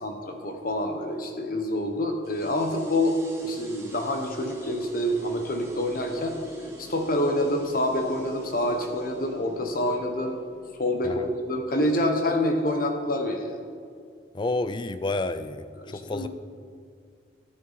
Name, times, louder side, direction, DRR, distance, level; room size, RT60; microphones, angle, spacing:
voice 1, 0.0-6.4 6.8-10.4 10.8-13.6 15.8-16.3, left 1 dB, 50° left, 4 dB, 1.1 m, -27 dB
sound 1, 2.2-13.3, right 1 dB, 15° right, 1.6 m, -46 dB
voice 2, 14.3-16.3, left 2 dB, 25° left, 12 dB, 0.3 m, -30 dB
11.5 x 9.1 x 4.2 m, 2.2 s
head